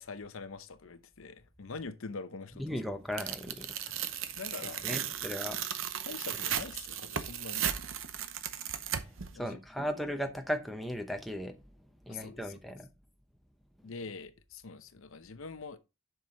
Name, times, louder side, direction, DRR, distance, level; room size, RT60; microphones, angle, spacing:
voice 1, 0.0-2.8 3.2-3.3 3.9-5.2 6.0-7.7 9.3-9.9 12.1-12.5 13.8-15.8, left 4 dB, 65° left, 0.7 m, -44 dB
voice 2, 2.6-3.7 4.8-5.6 8.9-9.0 9.3-11.6 12.0-12.9, equal, ahead, 0.8 m, -36 dB
Tearing, 3.2-9.3, right 9 dB, 60° right, 0.8 m, -36 dB
7.5 x 5.9 x 3.8 m
head